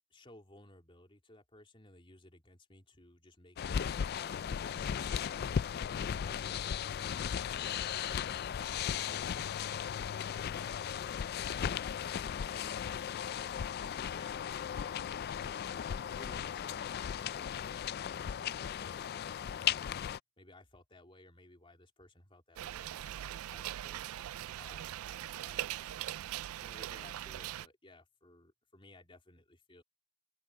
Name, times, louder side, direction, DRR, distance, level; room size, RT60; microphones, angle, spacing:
voice 1, 0.1-5.8 16.2-20.0 20.4-24.3 24.5-26.1 26.6-29.8, left 2 dB, 25° left, 3.7 m, -59 dB
sound 1, 3.6-20.2, left 8 dB, 45° left, 0.3 m, -36 dB
sound 2, 22.6-27.7, right 12 dB, 70° right, 0.3 m, -41 dB
head